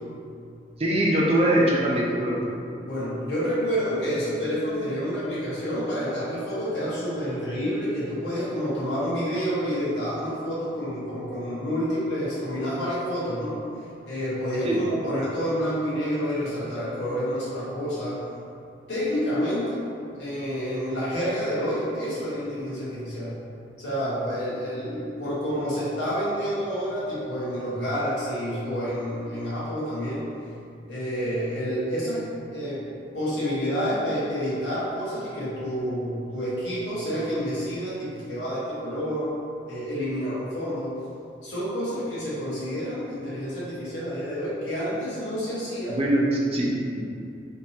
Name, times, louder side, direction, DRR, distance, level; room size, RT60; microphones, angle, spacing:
voice 1, 0.8-2.4 14.6-14.8 46.0-47.0, right 1 dB, 35° right, -4 dB, 0.5 m, -22 dB
voice 2, 2.8-13.6 14.1-18.2 18.9-19.8 20.2-23.4 23.8-30.2 30.9-32.8 33.1-39.3 39.7-41.0 41.4-46.0, equal, 75° left, -9 dB, 1.2 m, -29 dB
3.4 x 2.7 x 2.8 m, 2.5 s
head